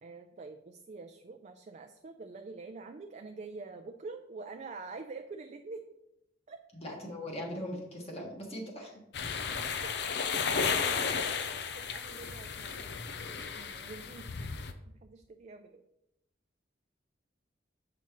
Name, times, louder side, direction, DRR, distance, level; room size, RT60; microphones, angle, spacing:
voice 1, 0.0-5.8 6.5-6.6 9.5-10.2 10.4-11.3 11.5-12.9 13.3-14.3 15.0-15.8, right 3 dB, 40° right, 5 dB, 0.4 m, -46 dB
voice 2, 6.7-9.0, left 1 dB, 35° left, -1 dB, 1.6 m, -40 dB
sound 1, 9.1-14.7, left 6 dB, 65° left, 0.5 m, -34 dB
7.0 x 5.9 x 3.1 m, 0.84 s
head